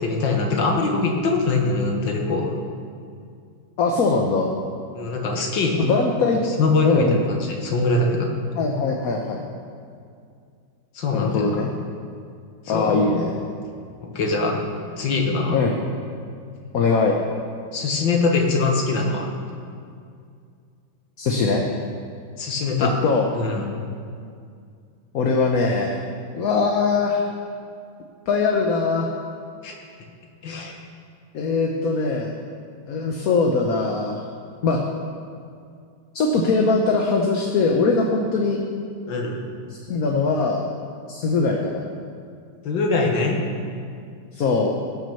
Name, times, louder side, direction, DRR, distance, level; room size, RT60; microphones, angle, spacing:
voice 1, 0.0-2.6 4.9-5.8 6.6-8.3 10.9-11.5 12.7-13.0 14.0-14.6 15.0-15.6 17.7-19.3 22.4-22.9 23.3-23.7 29.6-29.8 30.4-30.8 39.1-39.4 42.6-43.5, left 3 dB, 80° left, 1 dB, 2.1 m, -22 dB
voice 2, 3.8-4.5 5.8-6.4 6.8-7.2 8.6-9.4 11.1-11.7 12.7-13.3 15.5-15.8 16.7-17.2 21.2-21.6 22.8-23.3 25.1-26.0 26.3-27.2 28.3-29.1 31.3-32.3 32.9-34.2 34.6-34.8 36.1-38.6 39.9-40.7 41.1-41.8 44.3-44.7, left 4 dB, 55° left, 1 dB, 1.3 m, -21 dB
16.5 x 6.2 x 7.0 m, 2.3 s
omnidirectional pair, 2.0 m